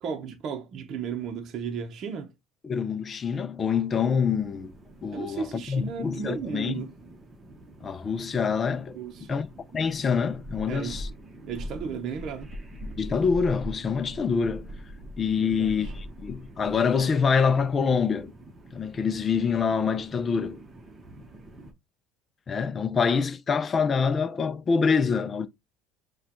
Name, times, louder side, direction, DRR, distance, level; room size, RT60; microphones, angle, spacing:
voice 1, 0.0-2.3 5.1-6.9 8.9-9.4 10.7-11.0 11.5-12.5 15.4-15.9, right 6 dB, 50° right, 0.8 m, -35 dB
voice 2, 2.6-4.7 5.0-6.7 7.8-9.5 9.7-11.1 13.0-14.7 15.2-18.3 18.7-20.6 22.5-25.5, left 6 dB, 30° left, 0.5 m, -26 dB
sound 1, 4.1-21.7, equal, 25° right, 1.0 m, -43 dB
6.4 x 2.4 x 2.9 m
cardioid pair, 125°, 0 cm